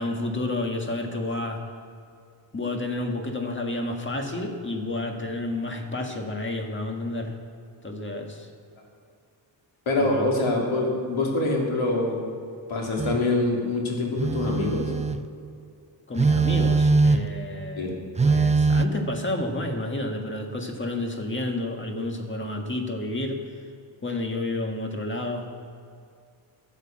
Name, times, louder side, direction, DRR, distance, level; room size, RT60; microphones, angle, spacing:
voice 1, 0.0-1.6 2.5-7.4 7.8-8.5 10.0-10.3 16.1-18.0 18.2-23.4 24.0-25.5, left 2 dB, 25° left, 3 dB, 1.6 m, -30 dB
voice 2, 9.9-12.2 12.7-14.8 17.8-17.9, left 2 dB, 80° left, -1 dB, 3.1 m, -25 dB
Telephone, 13.0-13.2 14.2-15.3 16.2-17.4 18.2-18.9, right 4 dB, 15° right, 0.4 m, -21 dB
14.0 x 8.2 x 7.4 m, 2.4 s
wide cardioid pair, 120°, 47 cm